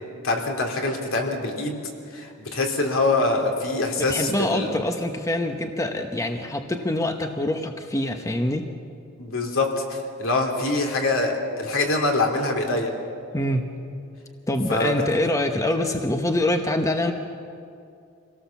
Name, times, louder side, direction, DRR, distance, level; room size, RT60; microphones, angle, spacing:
voice 1, 0.2-1.8 2.1-4.7 9.2-12.9 14.7-15.0, left 2 dB, 65° left, 2 dB, 3.0 m, -24 dB
voice 2, 4.1-8.7 13.3-13.7 14.5-17.1, left 1 dB, 15° left, 5 dB, 0.9 m, -25 dB
25.5 x 17.5 x 7.1 m, 2.5 s
head